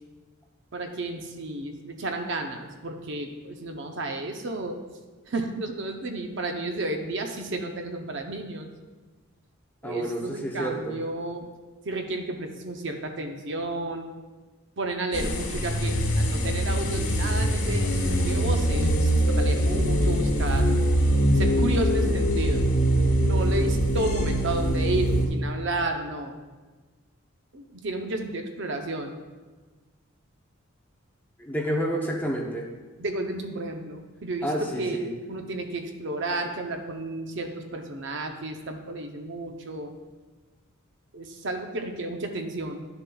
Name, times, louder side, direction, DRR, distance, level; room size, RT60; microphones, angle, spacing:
voice 1, 0.7-4.8 5.3-8.7 9.8-11.5 11.8-14.1 14.8-20.8 21.3-22.7 23.2-26.4 27.5-29.2 33.0-35.0 35.3-39.9 41.1-42.9, right 2 dB, 55° right, 4 dB, 0.6 m, -32 dB
voice 2, 9.8-11.0 31.4-32.7 34.4-35.1, equal, 10° left, 0 dB, 0.7 m, -29 dB
sound 1, 15.1-25.3, equal, 85° left, 1.2 m, -23 dB
11.0 x 6.7 x 2.3 m, 1.3 s
head